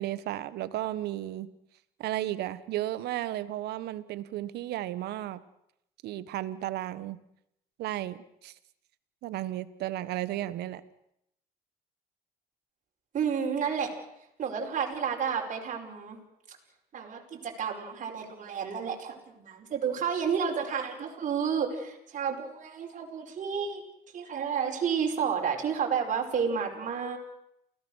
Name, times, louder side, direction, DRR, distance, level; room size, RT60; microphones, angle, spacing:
voice 1, 0.0-1.5 2.0-5.4 6.0-7.2 7.8-8.5 9.2-10.8, right 14 dB, 75° right, 15 dB, 1.4 m, -34 dB
voice 2, 13.1-13.9 14.4-16.2 16.9-23.8 24.1-27.2, right 7 dB, 50° right, 2 dB, 5.2 m, -31 dB
29.0 x 17.5 x 6.5 m, 0.77 s
cardioid pair, 110°, 17 cm